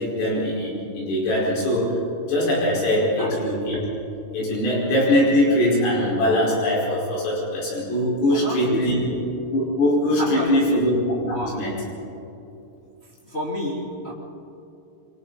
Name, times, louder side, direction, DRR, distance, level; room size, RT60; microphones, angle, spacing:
voice 1, 0.0-1.9 2.2-3.8 4.3-9.0 9.5-10.9 11.2-11.7, left 1 dB, 75° left, -5 dB, 7.7 m, -22 dB
voice 2, 8.3-9.2 10.2-10.9 11.3-11.7 13.2-14.1, equal, 50° left, -6 dB, 0.7 m, -31 dB
28.5 x 24.5 x 4.2 m, 2.8 s
omnidirectional pair, 5.9 m